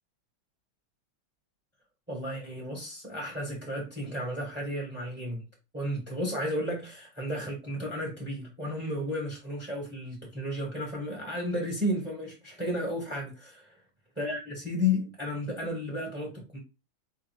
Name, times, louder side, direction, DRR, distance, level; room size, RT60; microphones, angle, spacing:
voice 1, 2.1-5.4 5.7-13.8 14.2-16.6, left 1 dB, 10° right, 0.6 m, -33 dB
4.2 x 3.6 x 3.1 m
omnidirectional pair, 2.4 m